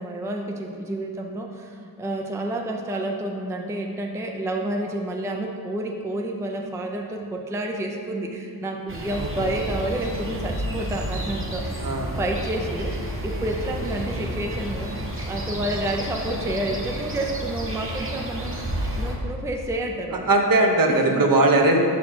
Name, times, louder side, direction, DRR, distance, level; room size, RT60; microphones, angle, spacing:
voice 1, 0.0-11.7 12.2-13.0 13.2-14.9 15.3-18.5 19.0-20.4 20.9-21.3, right 1 dB, 5° right, 2 dB, 0.5 m, -29 dB
sound 1, 8.9-19.2, equal, 30° right, 1.0 m, -31 dB
voice 2, 11.8-12.1 20.3-21.8, right 2 dB, 50° right, 2 dB, 0.9 m, -19 dB
6.0 x 4.2 x 4.5 m, 2.3 s
cardioid pair, 65°, 43 cm